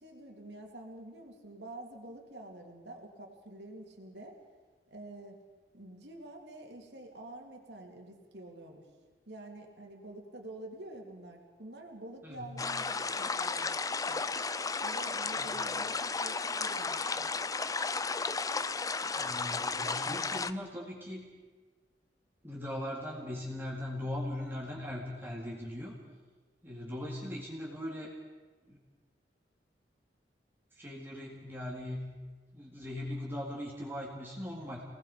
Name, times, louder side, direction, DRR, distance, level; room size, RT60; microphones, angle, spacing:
voice 1, 0.0-4.4 4.9-5.4 5.7-8.9 9.3-13.8 14.1-14.2 14.8-17.3, right 1 dB, 75° right, 1 dB, 3.0 m, -48 dB
voice 2, 12.2-12.6 15.4-15.6 19.2-21.3 22.4-25.9 26.6-28.1 28.7-28.8 30.7-32.1 32.5-34.8, left 1 dB, 15° right, -4 dB, 3.9 m, -39 dB
sound 1, 12.6-20.5, left 4 dB, 20° left, 0.6 m, -33 dB
30.0 x 19.0 x 5.1 m, 1.4 s
head